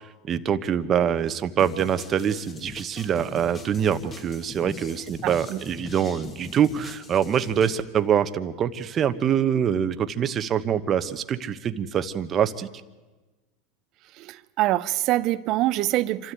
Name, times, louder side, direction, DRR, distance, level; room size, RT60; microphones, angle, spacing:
voice 1, 0.3-12.7, right 8 dB, 35° right, 1.1 m, -24 dB
sound 1, 1.6-7.8, left 3 dB, 25° left, 2.3 m, -42 dB
voice 2, 5.2-5.6 14.2-16.3, right 16 dB, 50° right, 0.8 m, -25 dB
27.0 x 13.0 x 9.3 m
supercardioid pair, 115°, 0 cm